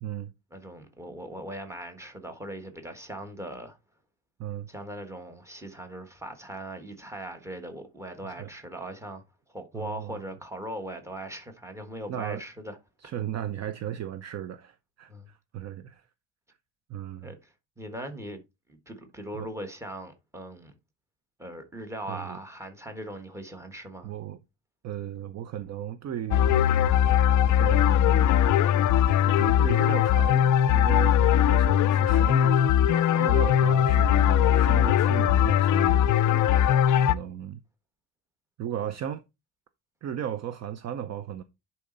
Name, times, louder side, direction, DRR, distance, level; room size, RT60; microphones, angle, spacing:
voice 1, 0.0-0.3 4.4-4.7 8.4-8.5 9.7-10.3 12.1-12.4 13.0-16.1 16.9-17.3 19.3-19.5 22.1-22.4 24.0-24.4 24.8-26.6 27.6-28.4 29.2-32.7 33.2-36.1 37.0-37.6 38.6-39.2 40.0-41.4, right 10 dB, 40° right, 0.5 m, -35 dB
voice 2, 0.5-3.8 4.7-9.2 9.5-12.8 15.1-15.3 17.2-18.4 18.7-20.7 21.4-24.1 33.1-33.5, right 1 dB, 5° right, 1.4 m, -39 dB
sound 1, 26.3-37.2, left 10 dB, 45° left, 0.5 m, -20 dB
10.0 x 4.3 x 3.9 m
cardioid pair, 165°, 43 cm